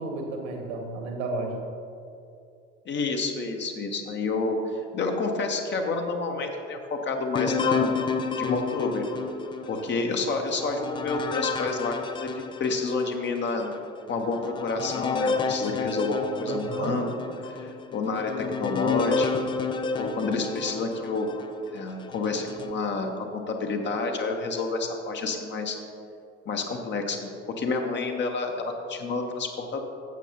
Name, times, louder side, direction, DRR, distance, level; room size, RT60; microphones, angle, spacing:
voice 1, 0.0-1.6 16.5-17.0, right 2 dB, 60° right, 2 dB, 1.7 m, -32 dB
voice 2, 2.9-4.6 4.9-8.0 8.3-9.0 9.7-13.7 14.1-17.1 17.4-19.3 20.0-21.3 21.7-25.8 26.5-29.9, left 3 dB, 30° left, 3 dB, 1.0 m, -29 dB
sound 1, 7.3-13.1 13.6-13.7 14.3-21.5 22.1-22.7, left 5 dB, 15° left, 0.4 m, -30 dB
12.5 x 8.1 x 2.9 m, 2.5 s
figure-of-eight pair, 65°, 37 cm